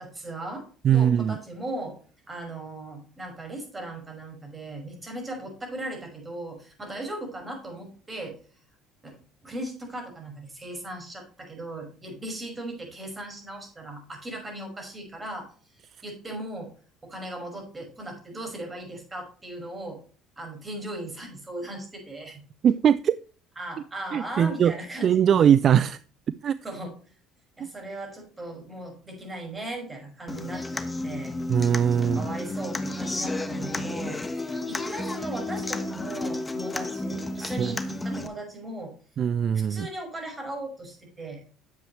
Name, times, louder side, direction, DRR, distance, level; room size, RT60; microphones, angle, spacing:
voice 1, 0.0-2.0 2.3-8.4 9.0-9.2 9.4-15.5 16.0-16.7 17.0-20.0 20.4-22.4 23.6-25.9 26.6-26.9 27.6-31.4 31.9-38.9 39.5-41.4, right 1 dB, 20° right, 5.5 m, -38 dB
voice 2, 0.8-1.4 22.6-23.2 24.1-24.7 25.0-26.0 26.3-26.6 27.6-27.7 31.5-32.3 37.6-37.7 39.2-39.9, right 8 dB, 50° right, 0.4 m, -21 dB
Human voice / Acoustic guitar, 30.3-38.3, left 2 dB, 15° left, 1.2 m, -32 dB
10.5 x 7.6 x 3.2 m
supercardioid pair, 80°, 0 cm